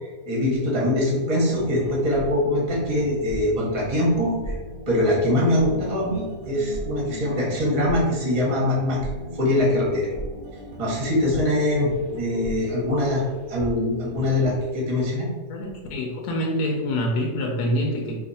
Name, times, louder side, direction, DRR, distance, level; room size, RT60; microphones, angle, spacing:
voice 1, 0.0-4.6 4.9-9.0 9.3-10.1 10.8-13.2 13.5-15.3, left 1 dB, 35° right, -4 dB, 0.7 m, -23 dB
sound 1, 1.5-13.9 14.1-14.6, right 1 dB, 65° right, 0.5 m, -37 dB
voice 2, 15.5-18.2, equal, 75° left, 0 dB, 1.1 m, -26 dB
2.8 x 2.4 x 4.0 m, 1.3 s
omnidirectional pair, 1.7 m